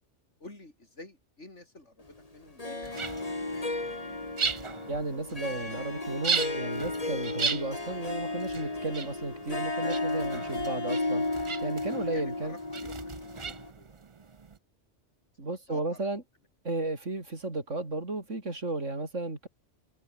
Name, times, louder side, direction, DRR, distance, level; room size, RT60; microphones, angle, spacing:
voice 1, 0.4-3.3 4.0-4.2 12.0-14.5 15.7-16.1, left 2 dB, 75° left, 6.2 m, -51 dB
Harp, 2.6-13.7, left 2 dB, 30° left, 2.5 m, -34 dB
sound 1, 2.8-14.6, right 5 dB, 35° right, 0.6 m, -37 dB
voice 2, 4.9-12.5 15.4-16.2 16.6-19.5, right 2 dB, 85° right, 4.8 m, -34 dB
omnidirectional pair, 1.2 m